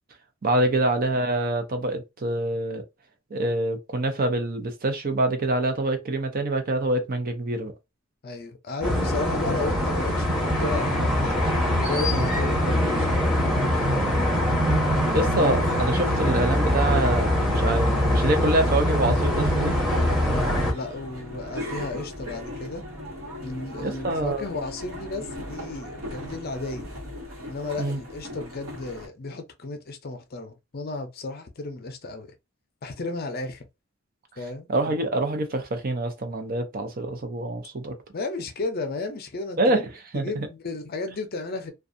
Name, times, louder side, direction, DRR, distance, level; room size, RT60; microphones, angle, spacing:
voice 1, 0.4-2.8 3.3-7.7 12.1-12.3 15.1-19.7 23.8-24.4 27.8-28.0 34.7-38.0 39.6-40.5, right 2 dB, 45° right, 0.5 m, -26 dB
voice 2, 8.2-11.4 11.8-13.1 20.2-22.8 23.4-26.9 27.5-32.3 32.8-33.6 34.4-34.7 38.1-39.8 40.1-41.7, left 3 dB, 45° left, 0.5 m, -33 dB
sound 1, 8.8-20.7, equal, 5° right, 0.8 m, -23 dB
sound 2, 14.4-29.1, left 1 dB, 85° right, 1.1 m, -38 dB
2.5 x 2.3 x 2.5 m
head